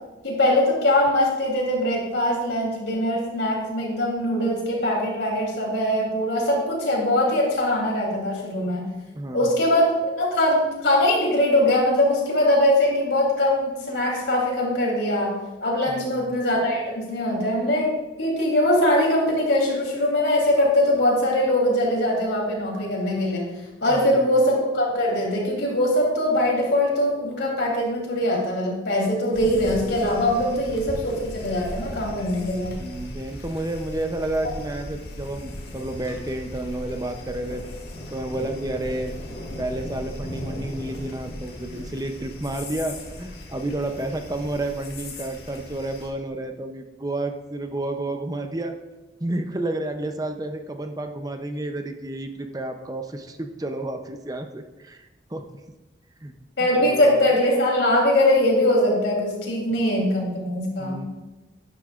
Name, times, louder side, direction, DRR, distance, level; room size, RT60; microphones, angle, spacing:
voice 1, 0.2-8.8 9.3-17.9 18.2-23.4 23.8-32.8 34.4-34.5 56.6-61.0, left 1 dB, 90° left, -2 dB, 3.1 m, -22 dB
voice 2, 9.1-9.6 15.9-16.3 23.9-24.3 32.8-37.6 38.1-39.1 39.6-48.7 49.2-55.4 56.2-56.3 56.6-57.2 60.8-61.1, right 1 dB, 20° right, 6 dB, 0.5 m, -31 dB
sound 1, 29.3-46.1, left 1 dB, 65° left, 1.7 m, -37 dB
11.5 x 9.4 x 2.4 m, 1.1 s
head